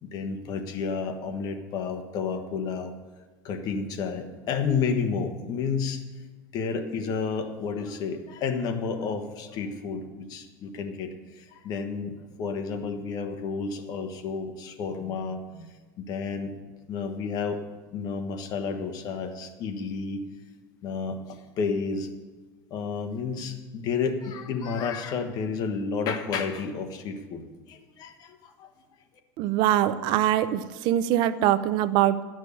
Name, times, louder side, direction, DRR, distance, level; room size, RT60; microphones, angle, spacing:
voice 1, 0.0-2.9 3.4-6.0 6.5-15.7 16.0-16.5 16.9-17.6 17.9-20.2 20.8-22.1 22.7-28.7, left 5 dB, 45° left, 6 dB, 1.3 m, -31 dB
voice 2, 29.4-32.2, right 12 dB, 60° right, 14 dB, 0.6 m, -23 dB
12.5 x 6.3 x 8.5 m, 1.3 s
supercardioid pair, 135°, 9 cm